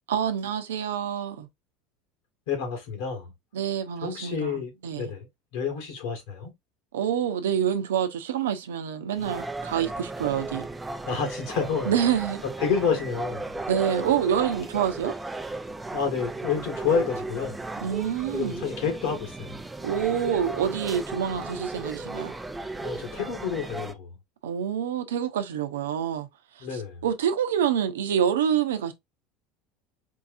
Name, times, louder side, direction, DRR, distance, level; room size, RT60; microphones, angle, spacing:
voice 1, 0.1-1.5 3.5-5.1 6.9-10.7 11.9-12.4 13.7-15.1 17.8-18.6 19.8-22.3 24.4-26.3 26.7-28.9, right 9 dB, 90° right, 0.7 m, -27 dB
voice 2, 2.5-3.3 4.0-5.3 5.5-6.5 11.0-11.9 12.4-13.6 15.9-17.6 18.3-19.6 22.8-24.1 26.6-27.0, left 6 dB, 75° left, 1.6 m, -29 dB
sound 1, 9.2-23.9, right 3 dB, 10° right, 0.5 m, -35 dB
4.5 x 2.7 x 2.5 m
hypercardioid pair, 90°, 0 cm